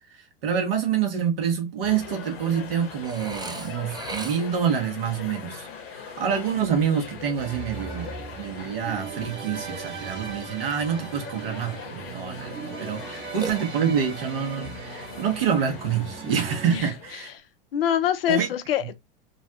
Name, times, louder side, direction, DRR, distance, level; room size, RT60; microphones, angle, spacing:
voice 1, 0.1-5.7 5.9-17.3 18.3-18.5, right 7 dB, 75° right, 1.4 m, -27 dB
sound 1, 1.8-17.4, left 5 dB, 45° left, 1.3 m, -41 dB
Burping eructation, 3.0-4.7 13.4-14.2, right 3 dB, 15° right, 0.7 m, -37 dB
sound 2, 7.4-16.8, right 6 dB, 40° right, 1.1 m, -39 dB
voice 2, 17.7-18.9, left 10 dB, 75° left, 0.7 m, -25 dB
3.9 x 2.3 x 2.8 m
hypercardioid pair, 90°, 29 cm